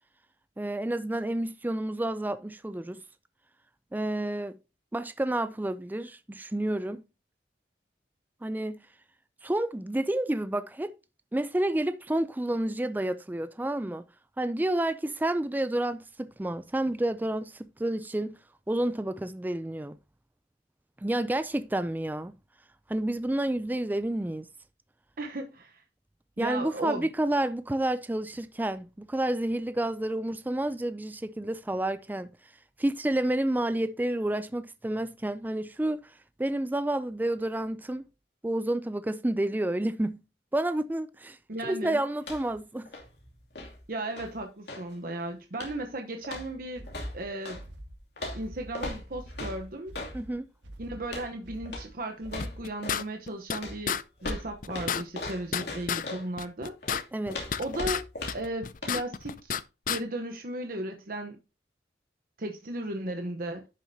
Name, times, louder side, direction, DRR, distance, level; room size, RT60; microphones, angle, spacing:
voice 1, 0.6-3.0 3.9-4.6 4.9-7.0 8.4-8.8 9.4-11.0 11.3-14.0 14.4-18.4 18.7-20.0 21.0-22.4 22.9-24.5 26.4-32.3 32.8-36.1 36.4-38.0 38.4-40.2 40.5-41.4 41.6-42.9 50.1-50.5 57.1-57.4, right 1 dB, 10° right, 0.4 m, -30 dB
voice 2, 25.2-25.8 26.4-27.1 41.5-42.0 43.9-46.9 47.1-47.6 48.3-50.0 50.8-56.7 57.6-58.0 58.3-59.6 59.9-61.4 62.4-63.7, right 1 dB, 50° right, 0.9 m, -35 dB
sound 1, 42.2-42.6 42.9-44.9 45.5-45.9 46.2-47.6 48.2-50.2 51.0-51.3 51.7-51.9 52.2-53.1 53.6-56.3 56.8-58.6 58.8-59.0, left 2 dB, 65° left, 2.6 m, -39 dB
sound 2, 46.7-52.8, right 1 dB, 85° right, 1.4 m, -46 dB
sound 3, 52.4-53.6 53.9-54.0 54.3-54.4 54.6-56.1 56.4-58.0 58.3-59.6 59.9-60.0, left 7 dB, 45° left, 0.5 m, -31 dB
11.0 x 6.5 x 2.7 m
head